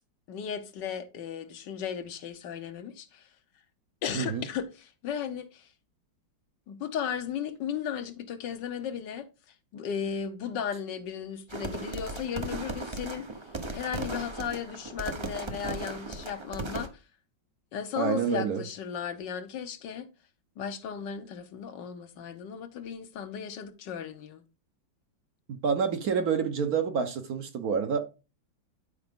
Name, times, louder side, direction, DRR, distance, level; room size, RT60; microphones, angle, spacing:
voice 1, 0.3-3.3 4.0-5.7 6.7-9.3 9.7-13.3 13.7-17.0 17.7-20.1 20.6-24.4, left 8 dB, 70° left, 1.5 m, -35 dB
voice 2, 4.1-4.5 18.0-18.6 25.5-28.0, right 6 dB, 60° right, 1.2 m, -28 dB
sound 1, 11.5-16.9, right 2 dB, 35° right, 0.4 m, -37 dB
10.5 x 4.8 x 3.6 m
omnidirectional pair, 2.0 m